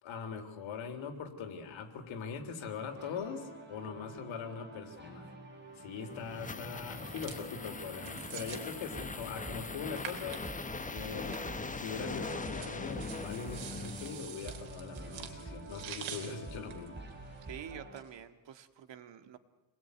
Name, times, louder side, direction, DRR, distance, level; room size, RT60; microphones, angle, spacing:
voice 1, 0.0-5.3 5.8-10.5 10.9-17.0, left 6 dB, 80° left, 6 dB, 3.5 m, -42 dB
sound 1, 2.8-18.0, right 2 dB, 25° right, 6.6 m, -48 dB
sound 2, 5.8-14.6, left 3 dB, 15° left, 1.2 m, -41 dB
sound 3, 6.9-17.7, right 8 dB, 85° right, 3.7 m, -49 dB
voice 2, 17.5-19.4, right 9 dB, 70° right, 9 dB, 2.0 m, -47 dB
27.0 x 21.0 x 9.5 m, 1.1 s
cardioid pair, 140°, 46 cm